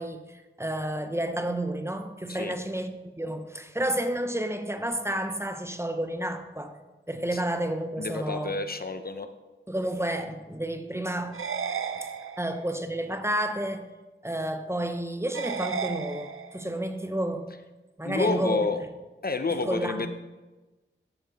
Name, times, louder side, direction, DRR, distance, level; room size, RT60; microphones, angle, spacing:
voice 1, 0.0-6.7 7.1-8.5 9.7-11.5 12.0-12.1 12.4-13.9 14.2-17.5 18.0-18.7 19.7-20.1, right 1 dB, 15° right, 0.9 m, -31 dB
voice 2, 8.0-9.3 18.0-18.8 19.2-20.1, left 3 dB, 45° left, 0.7 m, -29 dB
sound 1, 11.3-12.7 15.3-16.7, right 6 dB, 85° right, 0.5 m, -34 dB
13.5 x 6.0 x 4.1 m
wide cardioid pair, 50°, 21 cm